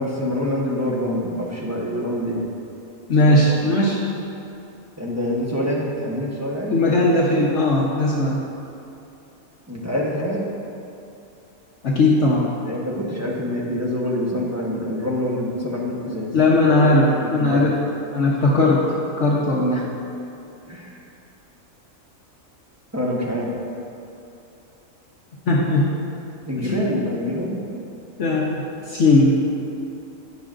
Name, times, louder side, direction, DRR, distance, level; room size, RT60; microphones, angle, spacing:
voice 1, 0.0-2.4 3.2-3.5 4.9-6.8 9.7-10.5 12.6-17.6 19.7-19.9 20.7-21.0 22.9-23.5 26.5-27.7, left 1 dB, 15° right, -5 dB, 1.0 m, -26 dB
voice 2, 3.1-4.0 6.7-8.4 11.8-12.4 16.3-17.8 18.1-18.8 19.2-19.8 25.5-26.0 26.6-26.9 28.2-29.3, left 2 dB, 60° left, -4 dB, 1.1 m, -18 dB
17.0 x 6.1 x 2.5 m, 2.7 s
omnidirectional pair, 1.5 m